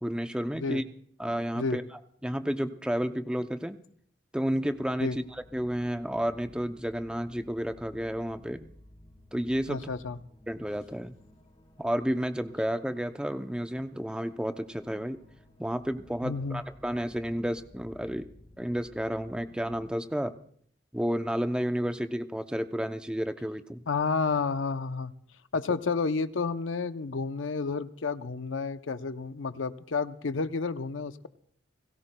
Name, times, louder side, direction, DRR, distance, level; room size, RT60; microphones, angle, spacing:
voice 1, 0.0-0.8 1.2-1.8 2.2-3.8 4.3-8.7 9.3-9.9 10.5-11.2 11.8-15.2 15.6-18.3 18.6-20.3 20.9-23.8, equal, 5° right, 8 dB, 0.5 m, -31 dB
sound 1, 4.4-19.9, left 1 dB, 25° left, 4.6 m, -56 dB
voice 2, 9.7-10.2 16.2-16.6 23.9-25.1 25.5-31.3, left 4 dB, 80° left, 11 dB, 0.6 m, -30 dB
30.0 x 17.5 x 2.2 m, 0.62 s
head